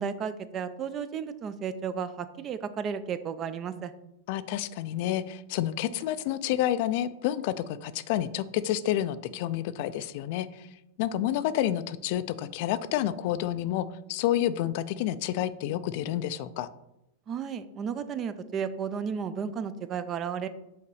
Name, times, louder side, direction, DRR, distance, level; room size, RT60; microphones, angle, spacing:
voice 1, 0.0-3.9 17.3-20.5, right 7 dB, 30° right, 13 dB, 0.4 m, -33 dB
voice 2, 4.3-10.7 11.0-16.7, left 12 dB, 55° left, 14 dB, 0.4 m, -29 dB
5.7 x 4.0 x 4.7 m, 0.86 s
hypercardioid pair, 125°, 0 cm